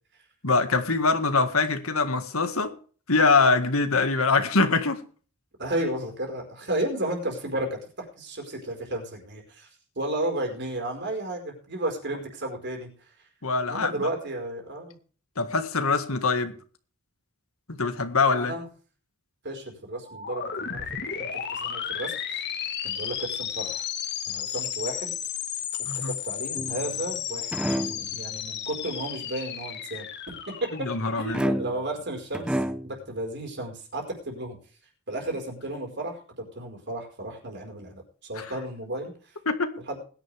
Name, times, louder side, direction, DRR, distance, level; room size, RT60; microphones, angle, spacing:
voice 1, 0.4-2.7 3.1-5.0 13.4-14.1 15.4-16.6 17.7-18.5 25.9-26.1 30.8-31.4 38.4-38.5 39.5-39.8, left 3 dB, 80° left, 1.9 m, -23 dB
voice 2, 5.6-9.7 10.0-12.9 13.7-15.0 18.4-18.7 19.4-22.4 22.8-23.9 24.3-25.1 25.9-30.1 30.6-30.9 31.2-34.6 35.1-39.3 39.9-40.0, right 1 dB, 55° right, 5.1 m, -33 dB
sound 1, 20.0-31.7, left 8 dB, 55° left, 1.9 m, -33 dB
sound 2, 26.6-27.1 27.5-28.1 31.3-32.0 32.3-33.0, equal, 5° right, 0.8 m, -29 dB
20.5 x 10.5 x 3.6 m
head